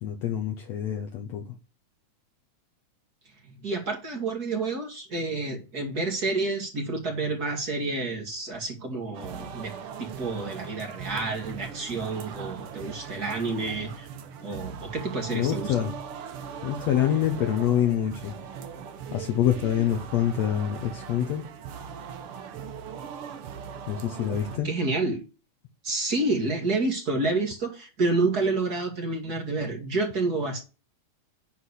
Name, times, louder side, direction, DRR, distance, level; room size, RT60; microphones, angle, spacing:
voice 1, 0.0-1.5 15.3-15.9 16.6-18.3 19.1-21.4 23.9-24.7, left 10 dB, 65° left, 2.1 m, -26 dB
voice 2, 3.5-9.7 10.0-14.1 14.4-15.9 24.3-25.2 25.8-30.6, right 3 dB, 35° right, 2.3 m, -29 dB
sound 1, 9.1-24.6, right 7 dB, 65° right, 1.4 m, -40 dB
10.0 x 3.8 x 6.5 m
omnidirectional pair, 3.5 m